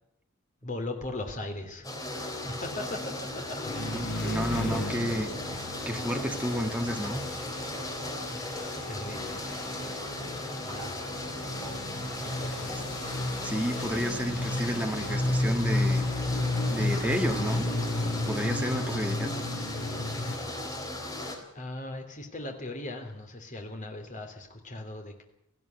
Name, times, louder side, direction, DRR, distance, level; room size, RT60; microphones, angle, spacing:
voice 1, 0.6-1.8 2.3-3.6 8.9-9.4 10.6-11.0 12.2-12.8 21.5-25.2, left 2 dB, 40° left, 4 dB, 3.3 m, -38 dB
sound 1, 1.8-21.4, left 1 dB, 15° left, 3.7 m, -37 dB
sound 2, 3.6-20.4, left 1 dB, 60° left, 7.1 m, -33 dB
voice 2, 3.9-5.3 5.8-7.2 13.4-16.1 16.7-17.6 18.3-19.3, equal, 5° right, 4 dB, 1.9 m, -31 dB
18.0 x 15.5 x 9.5 m, 0.77 s
head